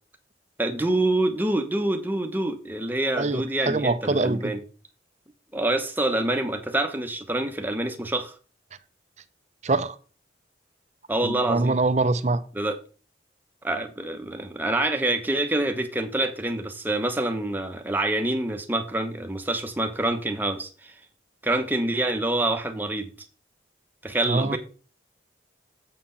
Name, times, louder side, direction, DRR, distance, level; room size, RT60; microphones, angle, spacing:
voice 1, 0.6-4.6 5.5-8.3 11.1-11.7 12.5-12.8 13.6-20.9 21.4-23.1 24.0-24.6, right 1 dB, 10° right, 1.0 m, -26 dB
voice 2, 3.2-4.5 9.6-10.0 11.2-12.4 24.3-24.6, right 3 dB, 40° right, 0.6 m, -24 dB
7.7 x 6.0 x 5.6 m
head